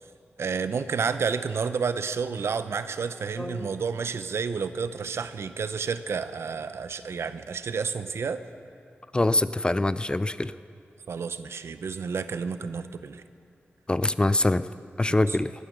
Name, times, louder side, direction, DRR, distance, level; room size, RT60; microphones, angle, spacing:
voice 1, 0.4-8.4 11.1-13.2 15.3-15.4, right 5 dB, 80° right, 12 dB, 0.6 m, -30 dB
voice 2, 3.4-3.7 9.1-10.5 13.9-14.7 15.0-15.5, left 2 dB, 20° left, 14 dB, 0.4 m, -24 dB
19.0 x 9.7 x 6.6 m, 2.5 s
cardioid pair, 60°, 4 cm